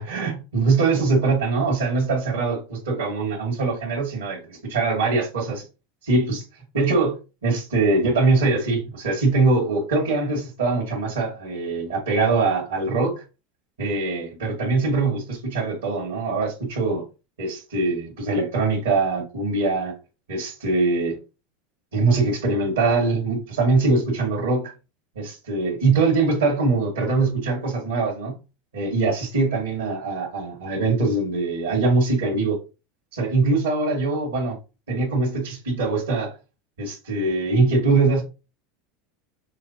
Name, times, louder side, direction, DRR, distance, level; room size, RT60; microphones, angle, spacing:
voice 1, 0.0-5.7 6.0-6.4 6.7-7.1 7.4-13.2 13.8-17.0 17.4-19.9 20.3-21.2 21.9-24.7 25.1-28.4 28.7-32.6 33.1-34.6 34.9-36.3 36.8-38.2, right 3 dB, 85° right, 1.8 m, -22 dB
5.8 x 2.7 x 2.8 m
hypercardioid pair, 85°, 0 cm